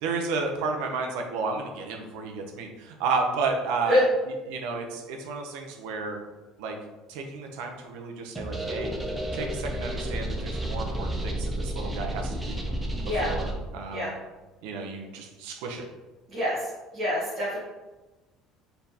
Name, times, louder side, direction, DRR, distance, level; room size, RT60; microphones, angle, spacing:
voice 1, 0.0-4.0 4.5-6.2 6.6-6.8 7.1-8.9 9.3-12.7 13.1-14.2 14.6-15.9, right 4 dB, 85° right, 3 dB, 0.6 m, -32 dB
sound 1, 8.3-13.5, right 1 dB, 10° right, 0.4 m, -31 dB
voice 2, 16.9-17.6, left 1 dB, 30° right, -11 dB, 1.3 m, -25 dB
4.1 x 3.3 x 2.8 m, 1.1 s
cardioid pair, 175°, 0 cm